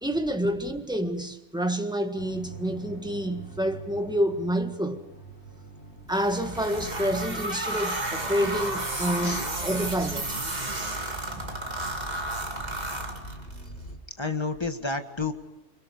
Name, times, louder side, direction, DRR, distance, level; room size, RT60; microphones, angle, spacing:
voice 1, 0.0-5.0 6.1-10.4, equal, 5° right, 1.6 m, -28 dB
sound 1, 2.2-14.0, right 2 dB, 60° left, 3.8 m, -44 dB
sound 2, 6.1-13.7, right 2 dB, 35° right, 2.7 m, -32 dB
voice 2, 14.2-15.3, left 3 dB, 20° left, 1.8 m, -31 dB
30.0 x 25.0 x 5.1 m
omnidirectional pair, 1.3 m